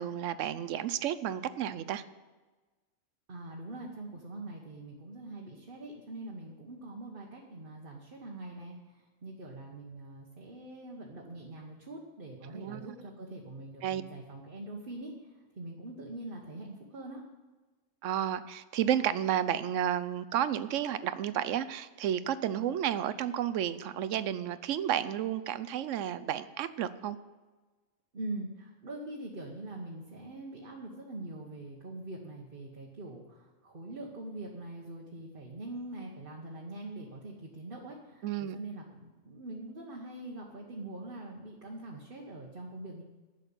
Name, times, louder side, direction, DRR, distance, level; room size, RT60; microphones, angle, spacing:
voice 1, 0.0-2.0 12.5-13.0 13.8-14.0 18.0-27.2 38.2-38.6, right 10 dB, 75° right, 14 dB, 0.9 m, -32 dB
voice 2, 3.3-8.8 9.2-15.1 15.6-17.2 28.1-43.0, right 2 dB, 45° right, -1 dB, 1.4 m, -43 dB
11.0 x 6.6 x 8.6 m, 1.2 s
omnidirectional pair, 1.3 m